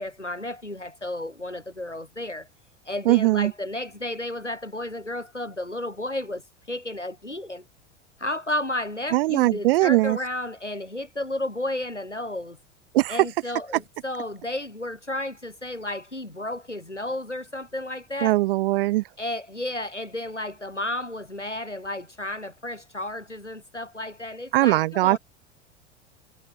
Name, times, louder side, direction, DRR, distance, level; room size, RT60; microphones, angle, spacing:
voice 1, 0.0-2.5 2.8-7.6 8.2-12.6 13.1-18.4 19.2-25.2, left 1 dB, 90° left, 3.5 m, -32 dB
voice 2, 3.1-3.5 9.1-10.2 12.9-13.2 18.2-19.0 24.5-25.2, right 18 dB, 55° right, 0.7 m, -20 dB
figure-of-eight pair, 85°, 35 cm